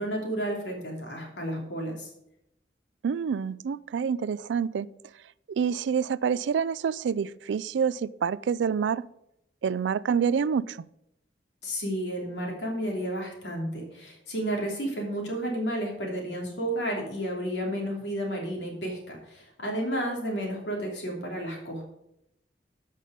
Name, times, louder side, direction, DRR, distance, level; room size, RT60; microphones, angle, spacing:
voice 1, 0.0-2.1 11.6-21.8, right 1 dB, 75° left, 0 dB, 3.0 m, -32 dB
voice 2, 3.0-4.9 5.5-9.0 9.6-10.9, right 6 dB, 80° right, 20 dB, 0.3 m, -27 dB
13.5 x 5.5 x 5.1 m, 0.82 s
head